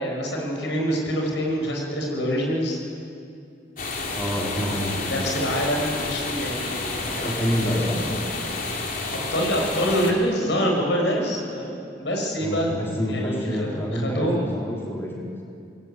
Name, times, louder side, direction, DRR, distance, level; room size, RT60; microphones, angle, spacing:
voice 1, 0.0-2.8 5.0-7.4 9.3-12.7 13.1-14.5, equal, 80° left, 0 dB, 7.1 m, -26 dB
sound 1, 3.8-10.1, left 3 dB, 50° left, 3.6 m, -30 dB
voice 2, 4.1-5.3 6.9-8.0 12.4-15.3, equal, 15° left, -3 dB, 4.2 m, -28 dB
26.5 x 22.0 x 9.4 m, 2.5 s
head